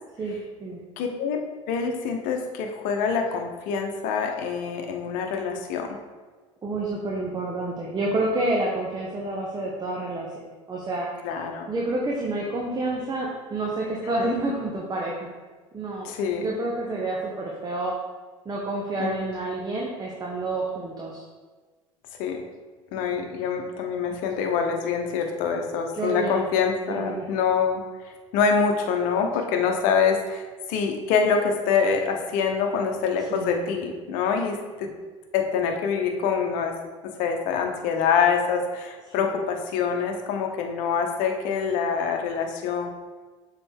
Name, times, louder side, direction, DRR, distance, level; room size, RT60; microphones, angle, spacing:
voice 1, 0.2-0.8 6.6-10.3 10.7-11.1 11.7-15.3 15.7-17.9 18.4-21.2 23.0-23.1 25.9-26.4 26.9-27.3 33.3-33.7 39.2-39.3, right 2 dB, 25° right, -2 dB, 1.0 m, -29 dB
voice 2, 1.0-1.4 1.7-6.0 11.2-11.7 14.0-14.3 16.0-16.5 19.0-19.3 22.2-22.4 22.9-34.9 35.3-36.8 37.0-42.9, left 6 dB, 60° left, 4 dB, 0.9 m, -25 dB
6.9 x 4.0 x 3.7 m, 1.4 s
hypercardioid pair, 75°, 16 cm